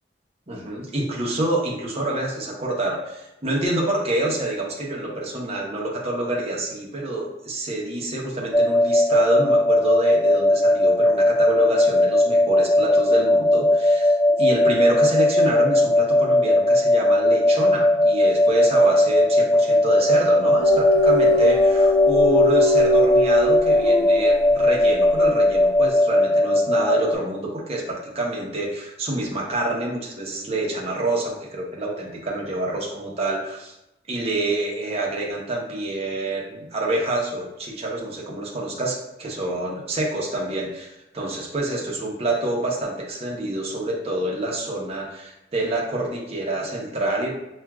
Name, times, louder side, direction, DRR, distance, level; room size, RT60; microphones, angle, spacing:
voice 1, 0.5-33.7 34.1-47.3, right 2 dB, 35° right, -2 dB, 0.8 m, -27 dB
sound 1, 8.5-27.1, left 1 dB, 15° left, 0.5 m, -18 dB
sound 2, 20.6-24.6, left 2 dB, 75° left, 1.0 m, -22 dB
5.9 x 2.4 x 2.3 m, 0.90 s
head